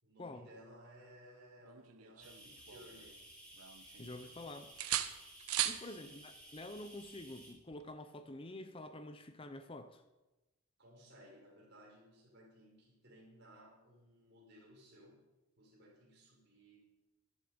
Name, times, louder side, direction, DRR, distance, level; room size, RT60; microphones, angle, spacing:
voice 1, 0.0-3.2 5.8-6.2 10.8-15.2 15.6-16.8, equal, 50° right, -3 dB, 5.3 m, -59 dB
sound 1, 1.7-3.2 3.6-4.4 4.8-5.9 7.7-7.9, right 12 dB, 85° right, 0.9 m, -39 dB
sound 2, 2.2-7.5, equal, 5° left, 4.2 m, -56 dB
voice 2, 4.0-4.7 5.6-10.0, left 1 dB, 25° left, 10 dB, 0.6 m, -48 dB
14.0 x 12.0 x 5.1 m, 1.1 s
head